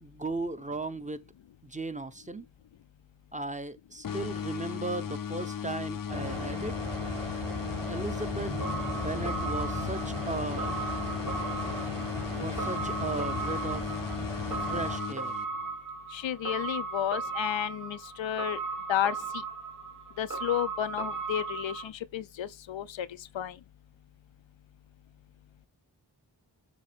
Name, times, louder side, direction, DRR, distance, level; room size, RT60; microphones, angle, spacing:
voice 1, 0.0-1.2 1.6-2.5 3.3-6.8 7.9-8.5 8.9-10.9 11.3-11.5 12.3-13.9 14.6-15.3, right 2 dB, 15° right, 0.8 m, -36 dB
sound 1, 4.0-15.8, left 8 dB, 50° left, 0.6 m, -36 dB
sound 2, 6.1-15.0, equal, 70° right, 4.2 m, -37 dB
sound 3, 8.6-21.9, right 4 dB, 45° right, 2.0 m, -37 dB
voice 2, 16.1-18.6 18.9-19.2 20.2-23.1 23.3-23.5, left 11 dB, 90° left, 0.6 m, -32 dB
7.2 x 2.9 x 5.1 m
cardioid pair, 45°, 45 cm